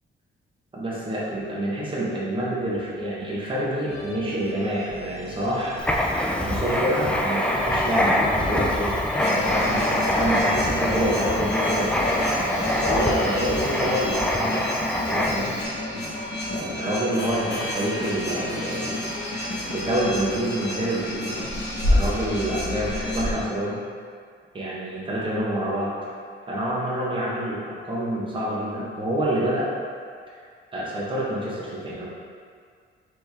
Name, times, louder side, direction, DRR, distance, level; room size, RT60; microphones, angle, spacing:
voice 1, 0.7-12.0 12.4-15.8 16.5-21.4 21.9-23.8 24.5-26.1 26.5-29.7 30.7-32.1, right 1 dB, 25° right, -6 dB, 1.0 m, -27 dB
sound 1, 3.9-11.3, equal, 30° left, 1.1 m, -41 dB
Writing, 5.8-15.6, left 1 dB, 5° left, 0.3 m, -25 dB
sound 2, 9.2-23.3, left 1 dB, 55° left, 1.3 m, -29 dB
4.5 x 3.3 x 3.4 m, 2.1 s
cardioid pair, 130°, 21 cm